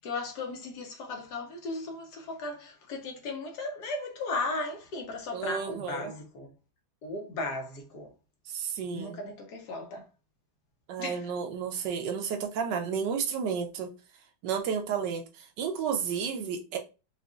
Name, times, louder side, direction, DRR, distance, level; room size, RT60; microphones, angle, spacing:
voice 1, 0.0-6.5 7.0-8.1 8.9-10.1 11.0-11.3, left 2 dB, 70° left, 1.4 m, -36 dB
voice 2, 5.3-6.1 8.5-9.2 10.9-13.9 14.4-16.8, right 7 dB, 80° right, 1.3 m, -32 dB
4.9 x 2.4 x 2.4 m
omnidirectional pair, 1.9 m